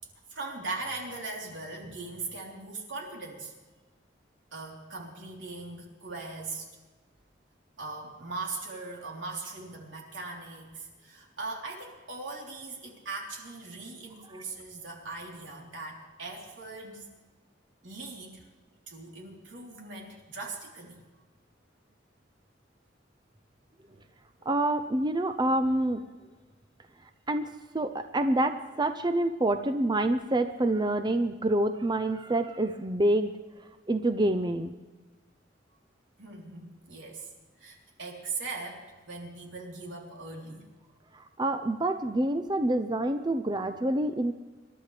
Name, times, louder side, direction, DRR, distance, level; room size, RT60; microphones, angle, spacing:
voice 1, 0.3-3.5 4.5-6.7 7.8-17.1 17.8-18.4 18.9-21.0 23.9-24.1 24.4-24.5 36.2-37.3 37.6-40.7, right 3 dB, 85° right, -1 dB, 3.7 m, -40 dB
voice 2, 24.5-26.0 27.3-33.3 33.9-34.7 41.1-44.3, right 1 dB, 25° right, 8 dB, 0.6 m, -27 dB
26.5 x 12.0 x 3.4 m, 1.3 s
head